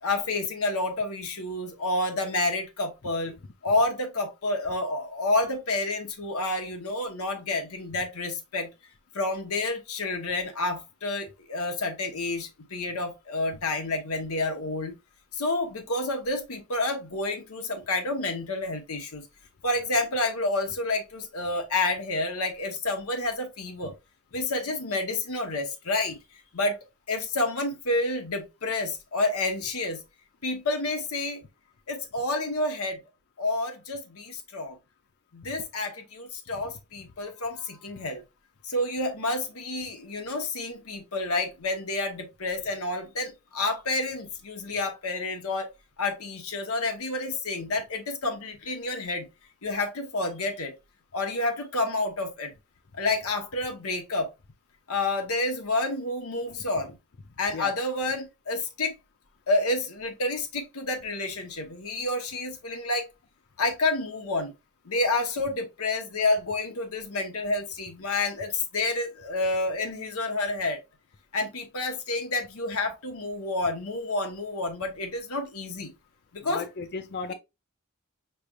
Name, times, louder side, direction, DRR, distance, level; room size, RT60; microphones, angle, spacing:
voice 1, 0.0-3.3 3.6-8.7 9.1-14.9 15.3-19.3 19.6-23.9 24.3-26.2 26.5-26.8 27.1-30.0 30.4-31.4 31.9-33.0 33.4-34.8 35.3-38.2 38.6-45.7 46.0-49.3 49.6-50.7 51.1-52.5 52.9-54.3 54.9-57.0 57.4-59.0 59.5-63.1 63.6-64.5 64.8-70.8 71.3-75.9 76.3-76.6, left 2 dB, 75° left, 1.1 m, -29 dB
voice 2, 76.4-77.3, left 4 dB, 50° left, 0.5 m, -34 dB
5.8 x 3.3 x 2.4 m
head